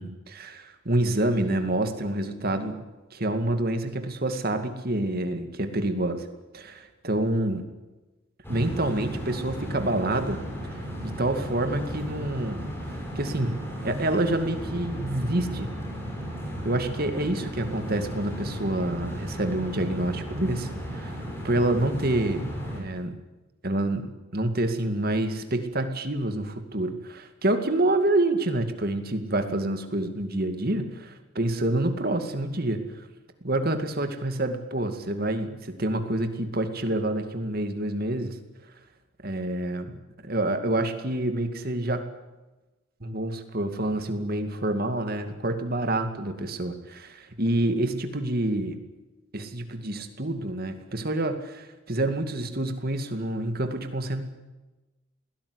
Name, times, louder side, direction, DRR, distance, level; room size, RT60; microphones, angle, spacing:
voice 1, 0.0-2.9 3.1-6.2 6.5-7.6 8.5-10.4 11.0-15.7 16.6-23.2 23.6-24.1 24.3-33.1 33.4-38.4 39.2-42.0 43.0-48.8 49.3-54.2, right 1 dB, 45° right, 7 dB, 2.3 m, -27 dB
sound 1, 8.4-22.8, equal, 10° left, 5.9 m, -35 dB
21.5 x 17.0 x 9.8 m, 1.1 s
head